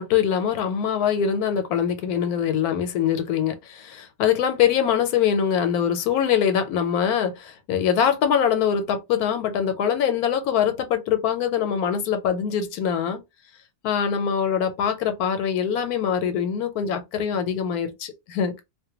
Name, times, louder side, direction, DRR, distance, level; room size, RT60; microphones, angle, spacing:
voice 1, 0.0-13.2 13.8-18.6, left 8 dB, 80° left, 1.1 m, -23 dB
2.5 x 2.2 x 2.8 m
omnidirectional pair, 1.6 m